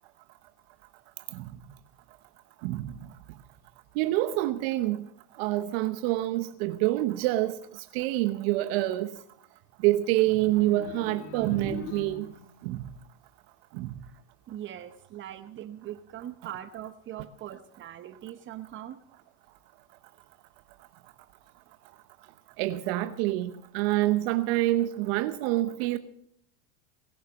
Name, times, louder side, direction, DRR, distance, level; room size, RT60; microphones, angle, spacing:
voice 1, 2.6-2.9 4.0-5.0 5.4-9.1 9.8-12.3 12.6-12.8 13.7-13.9 22.6-26.0, right 16 dB, 60° right, 0.9 m, -27 dB
sound 1, 10.6-12.6, left 6 dB, 75° left, 1.6 m, -41 dB
voice 2, 14.5-19.0, right 11 dB, 35° right, 0.9 m, -41 dB
21.5 x 7.4 x 7.1 m
supercardioid pair, 120°, 35 cm